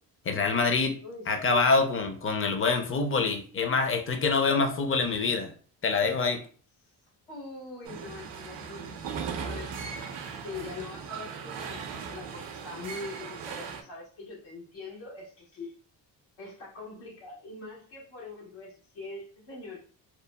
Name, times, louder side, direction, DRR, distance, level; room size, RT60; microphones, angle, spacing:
voice 1, 0.3-1.0 1.3-5.5 5.8-6.4, left 4 dB, 30° left, 6 dB, 0.5 m, -25 dB
voice 2, 1.0-1.6 7.3-9.9 10.3-15.7 16.4-19.9, left 3 dB, 85° left, -5 dB, 1.4 m, -43 dB
sound 1, 7.8-13.8, right 6 dB, 65° right, 0.6 m, -38 dB
2.9 x 2.0 x 2.2 m, 0.41 s
supercardioid pair, 60°, 46 cm